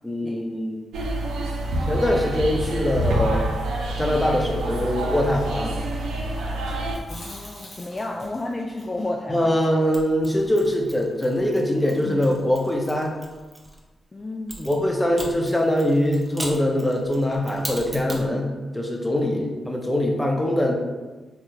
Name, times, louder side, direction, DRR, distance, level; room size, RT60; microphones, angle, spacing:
voice 1, 0.0-0.8 1.9-3.5 4.0-5.7 9.3-13.1 14.7-20.7, left 1 dB, 15° left, 0 dB, 0.7 m, -23 dB
sound 1, 0.9-7.0, right 1 dB, 90° right, 0.4 m, -27 dB
Chewing mastication, 6.9-11.0 11.3-11.4 11.7-12.5, left 1 dB, 65° left, 1.3 m, -41 dB
voice 2, 7.1-9.6 14.1-14.7 19.2-19.5, left 2 dB, 35° left, 0 dB, 0.3 m, -32 dB
Mechanisms, 9.9-13.8 14.5-18.3, right 1 dB, 20° right, 0.7 m, -39 dB
3.6 x 2.0 x 3.0 m, 1.2 s
supercardioid pair, 45°, 0 cm